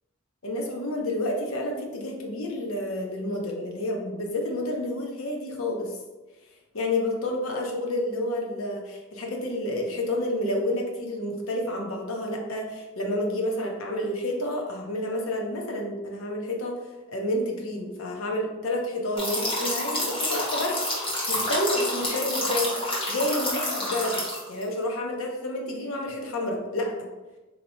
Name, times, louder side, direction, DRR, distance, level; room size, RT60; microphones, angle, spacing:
voice 1, 0.4-5.9 6.7-16.7 17.1-20.8 21.3-22.7 23.1-24.2 24.5-26.9, left 1 dB, 75° left, 1 dB, 0.7 m, -29 dB
sound 1, 19.2-24.6, left 1 dB, 25° left, 0.9 m, -28 dB
4.1 x 2.9 x 2.7 m, 1.1 s
head